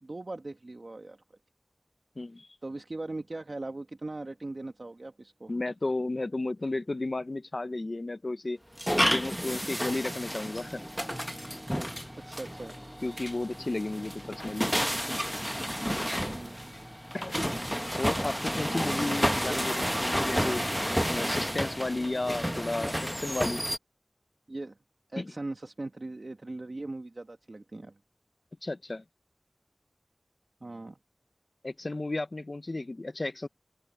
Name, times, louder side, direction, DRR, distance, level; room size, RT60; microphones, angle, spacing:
voice 1, 0.0-1.2 2.6-5.5 9.5-9.6 12.2-12.7 16.3-16.8 19.5-19.6 24.5-24.8 25.1-28.0 30.6-31.0, right 2 dB, 60° right, 1.3 m, -39 dB
voice 2, 2.2-2.5 5.5-8.6 9.0-10.8 13.0-14.7 17.1-17.4 18.0-20.6 21.1-23.6 25.2-25.3 28.6-29.0 31.6-33.5, left 2 dB, 60° left, 0.6 m, -33 dB
sound 1, 8.8-23.8, equal, ahead, 0.8 m, -31 dB
wide cardioid pair, 55°, 0 cm